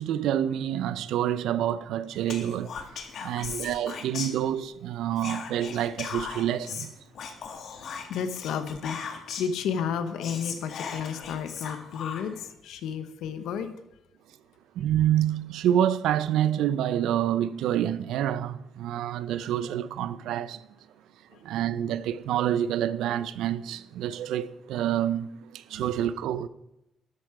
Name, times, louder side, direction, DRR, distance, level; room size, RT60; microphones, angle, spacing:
voice 1, 0.0-2.7 3.2-6.9 14.8-20.7 21.4-26.5, right 11 dB, 85° right, 0.5 m, -27 dB
Whispering, 2.3-4.8 5.2-9.6 9.9-10.0 10.2-12.5, left 6 dB, 65° left, 1.7 m, -38 dB
voice 2, 8.1-13.7 21.3-21.4, left 7 dB, 85° left, 1.1 m, -32 dB
12.5 x 8.5 x 4.9 m
cardioid pair, 90°, 0 cm